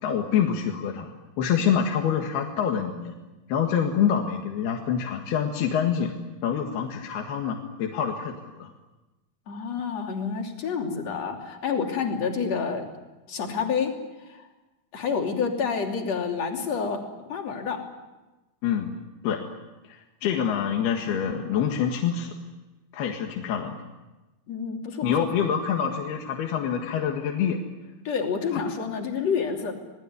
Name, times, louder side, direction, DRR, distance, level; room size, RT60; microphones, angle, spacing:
voice 1, 0.0-3.2 3.5-6.1 6.4-8.7 18.6-18.9 19.2-19.4 19.9-22.3 22.9-23.8 25.0-27.6 28.5-28.6, left 8 dB, 75° left, 2 dB, 3.7 m, -26 dB
voice 2, 9.5-12.8 13.3-13.9 14.2-14.5 14.9-17.8 24.5-25.3 28.1-29.7, left 6 dB, 45° left, 2 dB, 3.8 m, -28 dB
27.5 x 19.5 x 9.5 m, 1.1 s
omnidirectional pair, 4.6 m